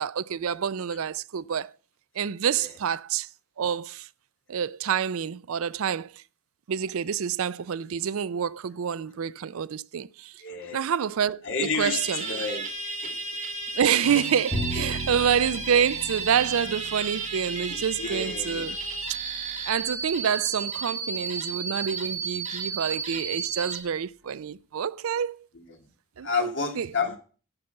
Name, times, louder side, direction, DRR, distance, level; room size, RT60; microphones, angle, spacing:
voice 1, 0.0-1.7 2.2-3.3 3.6-4.1 4.5-6.2 6.7-10.3 10.7-12.3 13.7-18.8 19.7-25.4 26.2-27.0, right 8 dB, 70° right, 0.4 m, -27 dB
voice 2, 10.4-10.9 11.4-12.6 13.0-13.2 14.8-14.9 18.0-18.6 26.2-27.2, left 4 dB, 55° left, 2.5 m, -30 dB
sound 1, 11.8-23.8, right 4 dB, 30° right, 2.3 m, -33 dB
Bowed string instrument, 14.5-20.7, right 1 dB, 10° left, 3.9 m, -38 dB
11.5 x 6.9 x 6.6 m
head